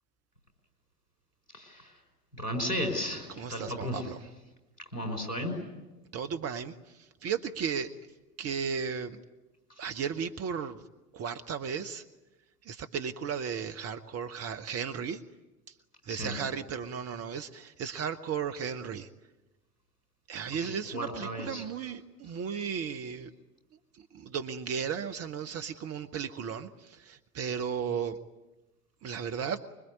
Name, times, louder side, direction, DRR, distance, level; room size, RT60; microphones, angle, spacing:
voice 1, 1.5-2.0 2.3-4.1 4.9-5.6 9.8-9.9 16.1-16.4 20.6-21.6, equal, 85° left, 5 dB, 5.4 m, -34 dB
voice 2, 3.4-4.2 6.1-7.9 8.4-9.2 9.8-10.8 11.1-12.0 12.6-15.2 16.0-19.1 20.3-23.3 23.9-28.2 29.0-29.6, right 7 dB, 30° right, 11 dB, 1.2 m, -35 dB
25.0 x 23.0 x 9.6 m, 1.1 s
figure-of-eight pair, 75°, 46 cm